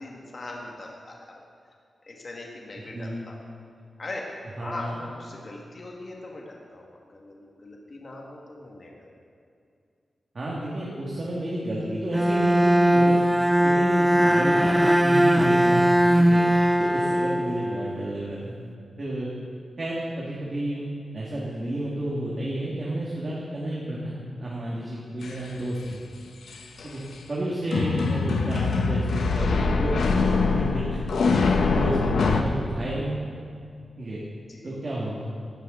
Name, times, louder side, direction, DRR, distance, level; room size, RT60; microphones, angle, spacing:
voice 1, 0.0-1.4 2.0-3.4 4.0-4.3 4.6-9.1 34.5-34.7, left 2 dB, 40° left, -1 dB, 1.8 m, -40 dB
voice 2, 4.6-5.0 10.3-13.2 13.6-18.6 19.0-19.3 19.8-20.9 21.1-26.0 26.8-27.0 27.3-31.0 31.3-33.2 34.0-34.2 34.6-35.3, right 1 dB, 40° right, -6 dB, 2.0 m, -31 dB
Bowed string instrument, 12.1-18.1, equal, 5° right, 0.4 m, -20 dB
sound 1, 25.2-25.3 26.5-26.9 27.7-32.4, left 4 dB, 80° left, 0.9 m, -23 dB
17.5 x 11.5 x 3.9 m, 2.4 s
wide cardioid pair, 150°, 0 cm